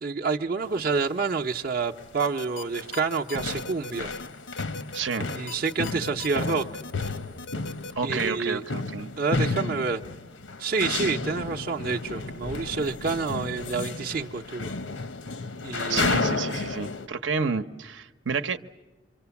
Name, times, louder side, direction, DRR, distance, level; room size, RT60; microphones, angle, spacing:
voice 1, 0.0-4.1 5.3-6.7 8.0-8.6 9.2-10.0 10.6-14.7 15.6-16.0, right 4 dB, 50° right, 2 dB, 0.7 m, -28 dB
sound 1, 0.6-0.8 1.6-1.7 2.0-2.3 2.6-17.1, left 3 dB, 85° left, 1.0 m, -32 dB
sound 2, 2.2-7.9, left 3 dB, 65° left, 0.7 m, -39 dB
voice 2, 4.9-5.3 8.0-9.1 15.9-18.6, right 5 dB, 80° right, 7 dB, 0.9 m, -30 dB
27.5 x 24.0 x 7.1 m, 1.2 s
head